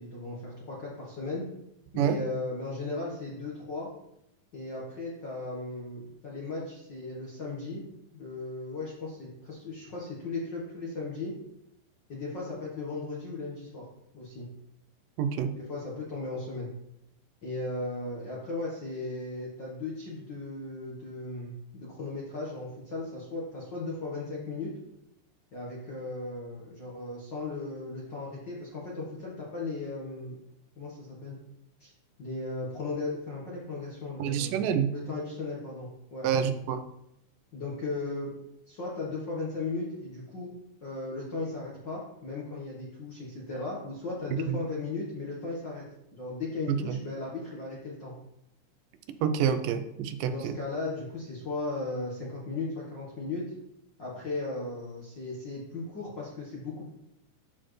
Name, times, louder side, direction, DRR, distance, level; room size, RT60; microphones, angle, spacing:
voice 1, 0.0-1.5 1.9-3.9 4.5-7.8 8.1-11.3 12.1-13.8 14.1-14.5 15.6-16.7 17.4-24.7 25.5-30.4 30.8-31.4 31.8-31.9 32.2-34.6 34.9-36.3 37.5-38.3 38.7-40.5 40.8-45.8 46.1-48.1 50.2-53.5 54.0-56.9, left 3 dB, 55° left, -5 dB, 1.3 m, -36 dB
voice 2, 15.2-15.5 34.2-34.9 36.2-36.8 44.5-44.6 46.7-47.0 49.2-50.5, right 8 dB, 85° right, 9 dB, 2.3 m, -27 dB
12.5 x 4.2 x 3.2 m, 0.81 s
omnidirectional pair, 3.8 m